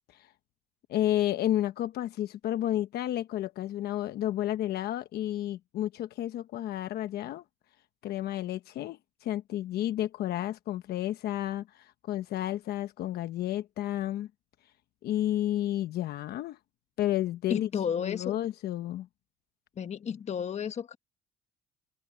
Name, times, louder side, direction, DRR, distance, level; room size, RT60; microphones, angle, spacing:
voice 1, 0.9-7.4 8.0-14.3 15.0-16.6 17.0-17.7 18.0-19.1, left 13 dB, 70° left, 1.0 m, -31 dB
voice 2, 17.5-18.4 19.8-21.0, left 7 dB, 40° left, 1.4 m, -32 dB
cardioid pair, 110°, 17 cm